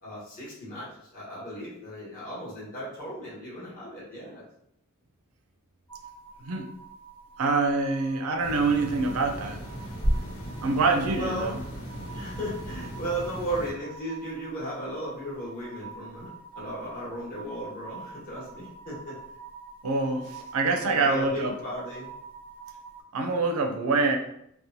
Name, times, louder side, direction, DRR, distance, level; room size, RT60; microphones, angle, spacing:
voice 1, 0.0-4.4 11.2-11.6 12.1-19.2 20.9-22.1, right 1 dB, 40° left, -8 dB, 1.1 m, -36 dB
sound 1, 5.9-23.0, right 4 dB, 5° left, 0.4 m, -47 dB
voice 2, 7.4-9.6 10.6-11.6 19.8-21.6 23.1-24.2, right 3 dB, 75° right, 5 dB, 0.4 m, -25 dB
sound 2, 8.4-13.7, equal, 85° left, 1.1 m, -34 dB
2.9 x 2.0 x 2.7 m, 0.74 s
head